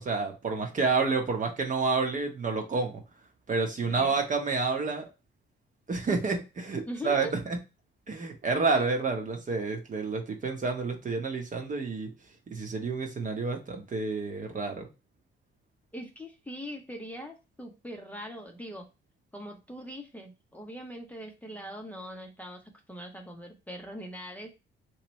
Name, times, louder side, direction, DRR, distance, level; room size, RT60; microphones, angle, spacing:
voice 1, 0.0-3.0 3.5-5.1 5.9-7.6 8.1-12.1 12.5-14.9, right 4 dB, 40° right, 3 dB, 1.0 m, -29 dB
voice 2, 3.8-4.2 6.9-7.3 8.7-8.8 15.9-18.9 19.3-24.5, equal, 5° left, 1 dB, 0.7 m, -41 dB
3.1 x 2.9 x 3.0 m, 0.27 s
cardioid pair, 90°, 20 cm